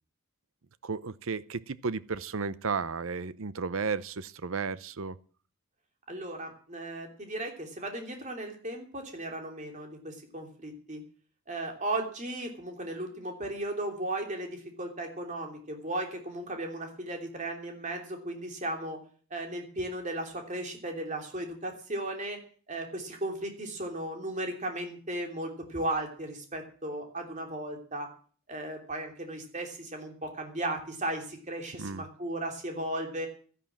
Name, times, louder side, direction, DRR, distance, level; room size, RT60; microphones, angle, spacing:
voice 1, 0.8-5.2 31.8-32.0, right 4 dB, 70° right, 0.7 m, -33 dB
voice 2, 6.1-11.0 11.5-19.0 19.3-22.4 22.7-28.1 28.5-33.3, right 1 dB, 35° right, 3.1 m, -36 dB
12.5 x 11.0 x 7.3 m
head